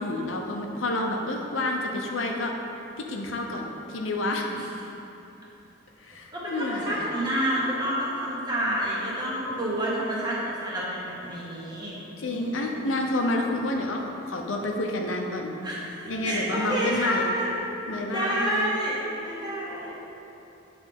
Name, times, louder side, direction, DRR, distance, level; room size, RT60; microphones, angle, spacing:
voice 1, 0.0-2.6 3.0-4.5 6.0-7.0 12.2-15.5 16.1-17.3 17.9-18.7, left 2 dB, 75° left, 1 dB, 0.7 m, -29 dB
voice 2, 6.3-12.0 12.3-12.9 15.6-15.9 16.2-17.5 18.1-20.0, right 1 dB, 20° right, -6 dB, 1.3 m, -29 dB
8.3 x 3.4 x 5.3 m, 2.9 s
head